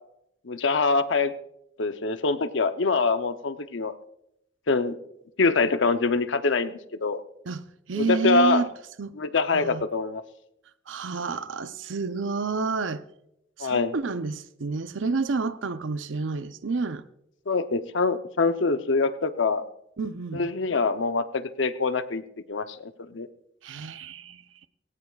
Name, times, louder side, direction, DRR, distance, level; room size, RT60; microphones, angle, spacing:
voice 1, 0.5-1.3 1.8-3.9 4.7-5.0 5.4-7.2 7.9-8.6 9.2-10.2 13.6-13.9 17.5-19.6 20.3-22.2 22.5-23.3, left 4 dB, 70° left, 0.7 m, -24 dB
voice 2, 7.5-8.7 9.0-9.2 9.5-9.9 10.9-13.0 13.6-17.0 20.0-20.5 23.6-24.4, right 4 dB, 75° right, 0.6 m, -29 dB
19.0 x 17.0 x 2.4 m
head